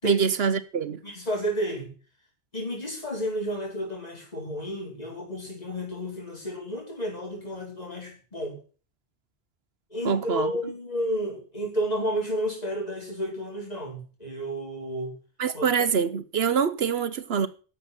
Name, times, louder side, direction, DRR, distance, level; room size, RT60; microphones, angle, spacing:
voice 1, 0.0-1.0 10.0-10.5 15.4-17.5, right 6 dB, 70° right, 1.1 m, -25 dB
voice 2, 1.0-1.9 2.5-8.6 9.9-15.1 15.5-15.7, equal, 40° left, 5.1 m, -31 dB
11.5 x 7.5 x 7.9 m
omnidirectional pair, 1.1 m